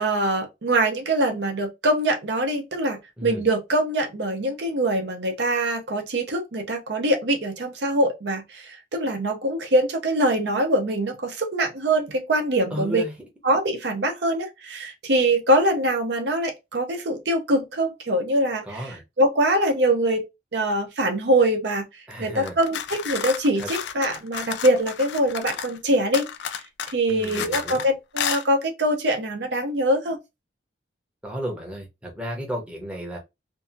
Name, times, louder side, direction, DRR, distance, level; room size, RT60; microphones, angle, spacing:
voice 1, 0.0-13.0 13.4-20.2 20.5-21.9 22.2-26.3 26.9-30.2, right 1 dB, 65° right, 0.7 m, -23 dB
voice 2, 12.7-13.1 18.6-19.0 22.1-22.5 23.6-23.7 27.1-27.8 31.2-33.2, equal, 5° right, 0.7 m, -33 dB
sound 1, 22.4-25.8 26.1-27.9 28.2-28.4, left 8 dB, 65° left, 0.3 m, -31 dB
2.7 x 2.4 x 2.5 m
head